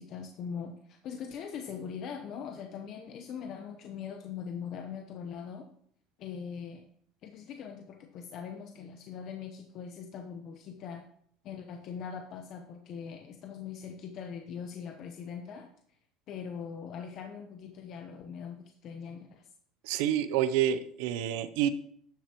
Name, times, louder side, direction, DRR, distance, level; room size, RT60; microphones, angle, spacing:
voice 1, 0.0-5.7 6.2-6.8 7.2-11.0 11.4-15.7 16.3-19.5, left 7 dB, 50° left, 4 dB, 0.9 m, -41 dB
voice 2, 19.8-21.7, right 10 dB, 80° right, 13 dB, 0.7 m, -28 dB
12.0 x 7.3 x 3.0 m, 0.64 s
supercardioid pair, 115°, 0 cm